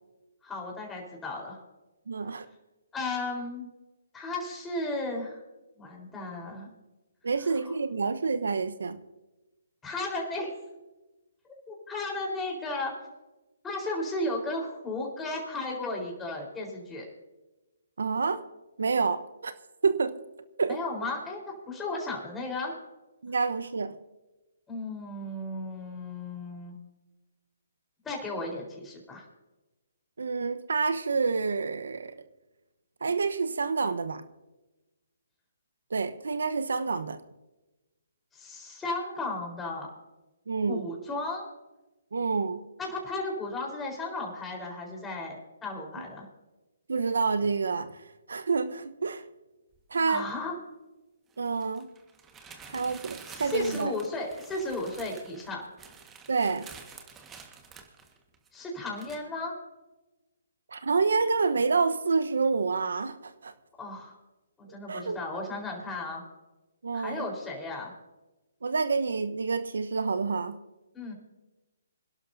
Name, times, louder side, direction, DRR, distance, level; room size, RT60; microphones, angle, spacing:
voice 1, 0.4-1.6 2.9-3.7 4.1-5.4 5.8-6.7 7.4-7.7 9.8-10.5 11.7-12.9 13.6-17.1 20.7-22.7 24.7-26.8 28.0-29.3 38.3-39.9 40.7-41.4 42.8-46.3 50.1-50.5 52.4-52.7 53.2-55.6 58.5-59.5 63.8-64.2 64.6-66.2 66.9-67.9 70.9-71.1, left 2 dB, 10° left, -1 dB, 4.2 m, -34 dB
voice 2, 2.1-2.5 7.2-9.0 18.0-18.4 18.8-19.5 19.8-20.1 20.6-20.8 23.2-24.0 30.2-32.2 33.0-34.2 35.9-37.2 40.5-40.9 42.1-42.6 46.9-47.9 48.3-49.2 49.9-50.2 51.4-51.9 52.7-53.9 56.3-56.6 60.7-63.5 64.9-65.1 66.8-67.3 68.6-70.6, right 4 dB, 75° right, 11 dB, 1.0 m, -28 dB
sound 1, 49.7-49.8 51.3-58.6 59.0-59.2, right 6 dB, 15° right, 1.6 m, -48 dB
26.0 x 11.5 x 2.7 m, 1.1 s
hypercardioid pair, 145°, 0 cm